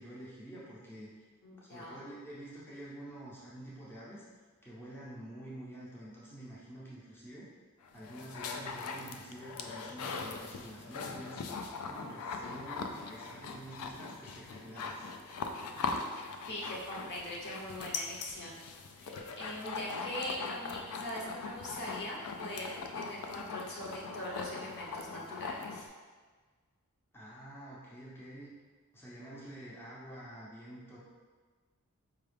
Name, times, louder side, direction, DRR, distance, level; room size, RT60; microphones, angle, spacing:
voice 1, 0.0-1.2 1.6-4.2 4.6-7.5 7.9-15.1 16.7-16.8 27.1-28.5 28.9-31.0, right 1 dB, 10° left, -7 dB, 0.6 m, -48 dB
voice 2, 1.4-2.1 16.5-18.6 19.0-25.9, left 1 dB, 50° left, -3 dB, 0.8 m, -42 dB
sound 1, 7.8-25.9, left 4 dB, 70° left, 0.3 m, -41 dB
4.7 x 2.3 x 3.3 m, 1.5 s
head